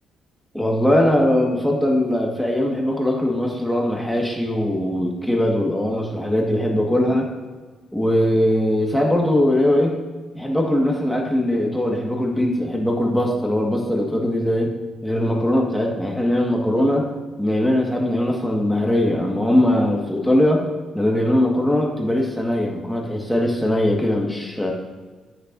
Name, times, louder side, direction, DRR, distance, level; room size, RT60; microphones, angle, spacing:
voice 1, 0.5-7.3 7.9-10.0 10.3-14.7 15.0-17.1 17.4-20.6 20.9-24.7, left 1 dB, 5° left, 0 dB, 1.6 m, -20 dB
15.5 x 6.6 x 2.6 m, 1.4 s
cardioid pair, 90°, 0 cm